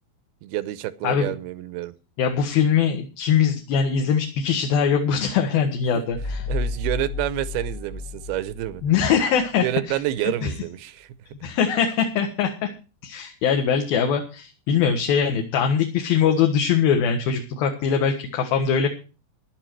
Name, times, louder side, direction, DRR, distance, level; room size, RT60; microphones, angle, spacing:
voice 1, 0.4-1.9 6.0-6.1 6.5-8.8 9.6-11.1, right 14 dB, 75° right, 15 dB, 2.5 m, -28 dB
voice 2, 2.2-6.5 8.8-10.5 11.4-12.7 13.0-18.9, left 7 dB, 65° left, 4 dB, 3.1 m, -22 dB
sound 1, 6.1-9.5, left 3 dB, 40° left, 2.2 m, -31 dB
14.0 x 11.0 x 4.6 m, 0.33 s
omnidirectional pair, 5.1 m